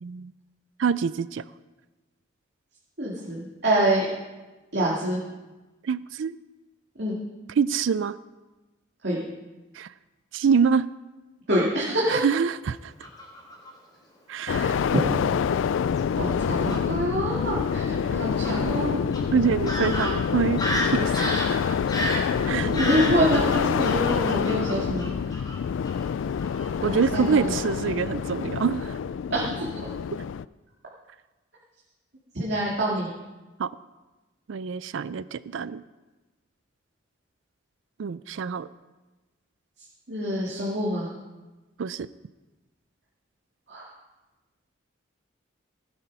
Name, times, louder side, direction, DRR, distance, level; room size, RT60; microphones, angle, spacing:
voice 1, 0.0-0.3 0.8-1.4 5.8-6.3 7.6-8.2 9.7-9.9 10.3-10.9 12.1-12.9 14.3-14.7 19.3-21.8 22.4-22.7 26.8-28.9 33.6-33.7 34.5-35.8 38.0-38.7 41.8-42.1, right 6 dB, 75° right, 16 dB, 0.4 m, -25 dB
voice 2, 3.0-4.0 4.7-5.2 7.0-7.2 9.0-9.2 11.5-12.2 14.5-15.0 16.2-19.3 22.5-25.1 26.8-27.6 29.3-29.9 32.3-33.1 40.1-41.1 43.7-43.9, equal, 55° right, -6 dB, 2.5 m, -26 dB
Fowl / Bird vocalization bird call bird song, 13.0-13.7 14.5-15.2 16.0-16.1 16.4-16.8 18.4-18.6 19.1-19.2 19.7-25.6 25.8-26.1 26.4-26.7 27.0-27.2, equal, 20° left, 3.8 m, -31 dB
sound 1, 14.5-30.5, left 7 dB, 75° left, 0.3 m, -27 dB
15.5 x 8.8 x 5.5 m, 1.1 s
head